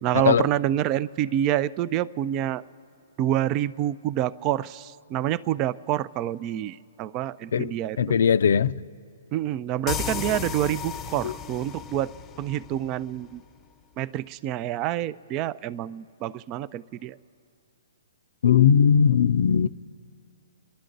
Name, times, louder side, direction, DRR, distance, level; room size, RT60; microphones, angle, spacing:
voice 1, 0.0-2.6 3.2-8.0 9.3-12.1 12.4-13.4 14.0-17.2, right 12 dB, 30° right, 0.4 m, -27 dB
voice 2, 7.5-8.7 11.2-11.3 18.4-19.7, left 7 dB, 70° left, 0.4 m, -19 dB
sound 1, 9.9-13.4, left 7 dB, 20° left, 0.6 m, -34 dB
30.0 x 11.5 x 3.9 m
hypercardioid pair, 130°, 0 cm